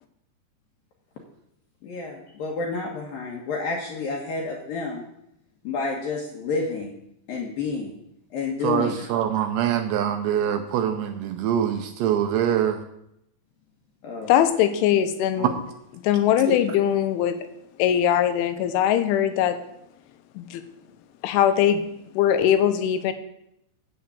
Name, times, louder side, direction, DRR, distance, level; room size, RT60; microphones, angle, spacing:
voice 1, 1.8-5.0 5.6-6.9 7.3-7.9 8.3-9.1 14.0-14.4, left 4 dB, 65° left, 0 dB, 2.4 m, -30 dB
voice 2, 8.6-12.8 15.4-15.5 16.5-16.6, right 10 dB, 80° right, 6 dB, 2.8 m, -24 dB
voice 3, 14.3-15.5 16.0-17.4 17.8-19.6 20.4-20.6 21.2-21.8 22.2-23.1, left 10 dB, 85° left, 10 dB, 3.3 m, -21 dB
8.5 x 8.4 x 7.0 m, 0.80 s
omnidirectional pair, 5.4 m